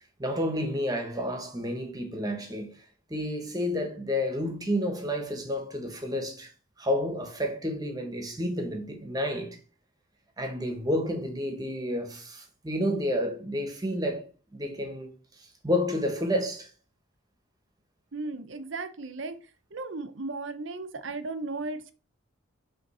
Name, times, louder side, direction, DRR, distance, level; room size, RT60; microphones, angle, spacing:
voice 1, 0.2-2.7 3.1-6.5 6.8-9.6 10.4-14.3 14.5-15.1 15.4-16.7, equal, 20° right, 1.2 m, -30 dB
voice 2, 18.1-19.4 19.7-21.9, right 3 dB, 65° right, 0.8 m, -35 dB
5.3 x 3.8 x 5.5 m
head